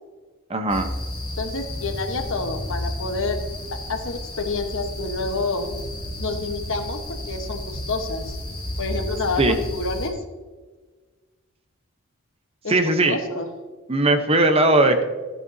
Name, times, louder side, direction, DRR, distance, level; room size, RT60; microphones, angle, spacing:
voice 1, 0.5-0.9 9.4-9.6 12.7-13.2 13.9-15.0, right 2 dB, 30° right, 7 dB, 0.9 m, -18 dB
sound 1, 0.7-10.1, left 1 dB, 25° left, 3.5 m, -32 dB
voice 2, 1.4-3.4 3.7-5.7 6.2-8.4 8.8-10.1 12.6-12.7 13.1-13.5, left 3 dB, 65° left, 6 dB, 1.2 m, -28 dB
14.0 x 9.6 x 2.7 m, 1.4 s
head